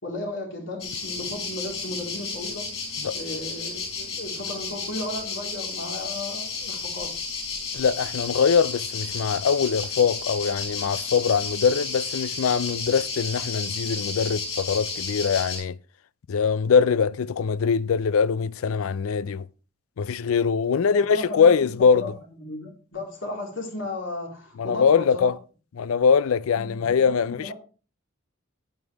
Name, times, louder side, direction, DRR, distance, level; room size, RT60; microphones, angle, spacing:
voice 1, 0.0-2.7 3.1-7.1 20.9-21.5 21.9-22.1 22.4-25.3 26.5-27.5, left 1 dB, 60° left, 4.0 m, -35 dB
sound 1, 0.8-15.6, left 4 dB, 25° left, 4.9 m, -32 dB
voice 2, 7.7-15.8 16.3-19.5 20.0-22.1 24.6-25.4 25.8-27.5, left 6 dB, 85° left, 0.4 m, -22 dB
10.0 x 9.5 x 3.4 m
head